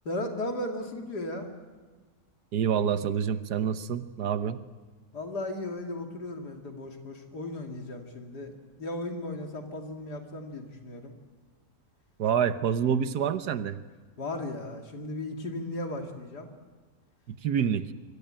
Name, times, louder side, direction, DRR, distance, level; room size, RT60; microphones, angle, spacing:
voice 1, 0.0-1.5 5.1-11.1 14.2-16.5, left 1 dB, 75° left, 4 dB, 3.1 m, -36 dB
voice 2, 2.5-4.6 12.2-13.8 17.3-17.9, right 8 dB, 75° right, 12 dB, 1.6 m, -27 dB
24.5 x 24.5 x 9.0 m, 1.4 s
omnidirectional pair, 1.7 m